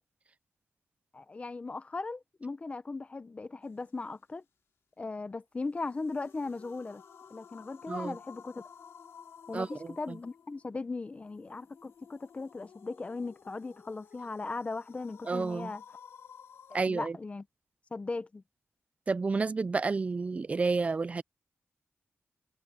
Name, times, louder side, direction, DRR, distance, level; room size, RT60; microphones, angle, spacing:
voice 1, 1.1-4.4 5.0-7.0 7.3-8.6 9.5-15.8 16.7-17.4 17.9-18.4, left 3 dB, 30° left, 0.8 m, -38 dB
sound 1, 5.7-16.8, left 7 dB, 80° left, 3.1 m, -54 dB
voice 2, 9.5-10.2 15.3-15.7 16.7-17.2 19.1-21.2, right 4 dB, 30° right, 0.4 m, -30 dB
wide cardioid pair, 110°, 4 cm